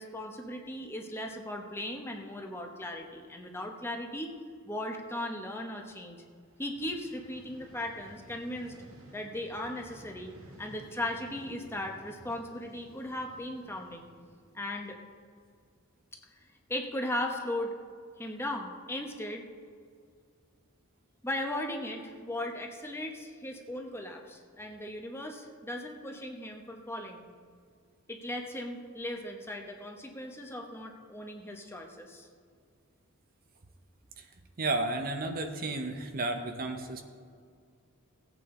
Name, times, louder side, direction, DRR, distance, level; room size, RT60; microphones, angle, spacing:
voice 1, 0.0-4.3 4.6-6.2 6.6-8.7 9.1-10.3 10.6-14.1 14.5-15.0 16.7-17.8 18.2-19.5 21.2-27.3 28.1-32.3, left 1 dB, 10° left, 2 dB, 0.9 m, -37 dB
Vehicle, 6.3-15.3, right 1 dB, 80° right, 1.6 m, -54 dB
voice 2, 34.6-37.0, right 2 dB, 45° right, 5 dB, 0.8 m, -32 dB
17.5 x 8.4 x 3.8 m, 2.1 s
head